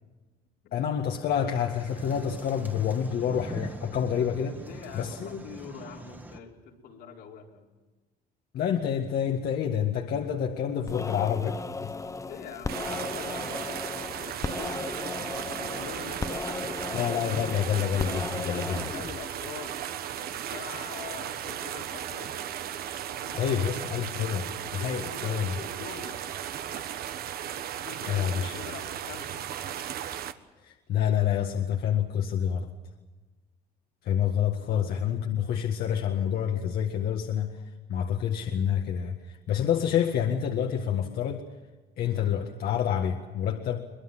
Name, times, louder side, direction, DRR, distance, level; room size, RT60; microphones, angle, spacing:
voice 1, 0.7-4.6 4.9-5.4 8.5-11.9 16.9-18.8 23.4-24.5 24.7-25.6 28.1-28.6 30.6-32.7 34.0-37.6 37.9-41.4 42.0-43.9, left 9 dB, 65° left, 3 dB, 1.8 m, -28 dB
sound 1, 1.1-6.4, right 2 dB, 10° right, 1.8 m, -43 dB
voice 2, 4.6-7.7 12.2-15.2 15.5-16.9 18.4-19.8 20.2-22.4 23.2-24.1 24.8-26.2 27.8-29.5 34.6-35.0, left 6 dB, 90° left, -1 dB, 4.5 m, -44 dB
sound 2, 10.9-19.2, left 3 dB, 20° left, 0.8 m, -36 dB
sound 3, 12.7-30.3, right 10 dB, 65° right, 1.2 m, -36 dB
23.5 x 21.5 x 7.6 m, 1.2 s
cardioid pair, 110°, 17 cm